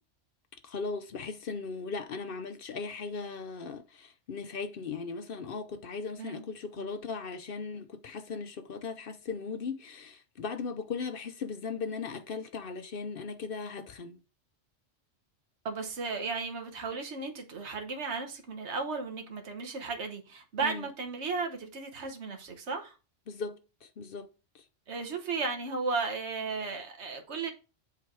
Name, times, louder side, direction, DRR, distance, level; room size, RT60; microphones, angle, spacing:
voice 1, 0.6-14.2 20.6-20.9 23.3-24.6, left 5 dB, 55° left, 0.8 m, -38 dB
voice 2, 15.6-22.9 24.9-27.5, right 4 dB, 65° right, 1.4 m, -35 dB
7.8 x 3.4 x 4.6 m
omnidirectional pair, 1.3 m